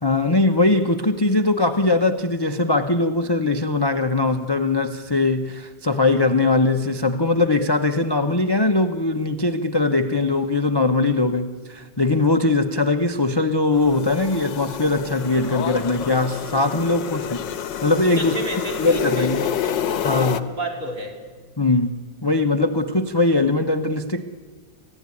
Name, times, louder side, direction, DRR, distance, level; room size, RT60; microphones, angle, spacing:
voice 1, 0.0-17.4 17.8-18.3 18.8-19.4 20.0-20.6 21.6-24.2, left 2 dB, 25° left, 8 dB, 0.5 m, -21 dB
sound 1, 13.7-20.4, left 9 dB, 85° left, 1.7 m, -28 dB
voice 2, 17.0-17.3 18.2-21.2, right 1 dB, 50° right, 0 dB, 4.6 m, -31 dB
28.0 x 15.5 x 9.8 m, 1.5 s
omnidirectional pair, 1.9 m